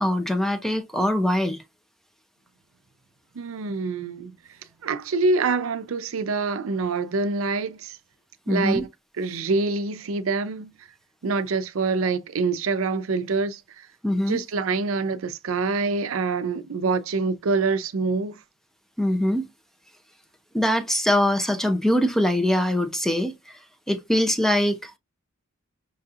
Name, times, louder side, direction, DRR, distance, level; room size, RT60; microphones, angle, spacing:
voice 1, 0.0-1.6 8.5-8.8 14.0-14.4 19.0-19.5 20.5-23.3 23.9-25.0, left 1 dB, ahead, 0.5 m, -22 dB
voice 2, 3.4-4.3 4.8-8.0 8.5-8.9 9.2-10.7 11.2-13.9 14.3-18.4, right 4 dB, 80° right, 0.5 m, -25 dB
5.5 x 2.7 x 2.4 m
head